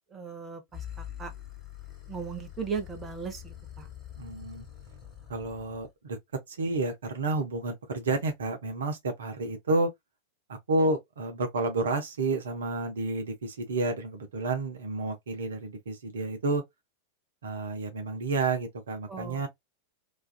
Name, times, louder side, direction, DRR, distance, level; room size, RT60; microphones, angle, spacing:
voice 1, 0.1-1.3 2.1-3.9 19.1-19.4, right 6 dB, 20° right, 0.6 m, -37 dB
sound 1, 0.7-5.9, left 11 dB, 25° left, 1.2 m, -44 dB
voice 2, 4.2-4.7 5.3-6.2 6.5-9.9 10.5-16.6 17.4-19.5, right 3 dB, 65° right, 0.6 m, -30 dB
2.4 x 2.3 x 2.2 m
figure-of-eight pair, 90°, 0 cm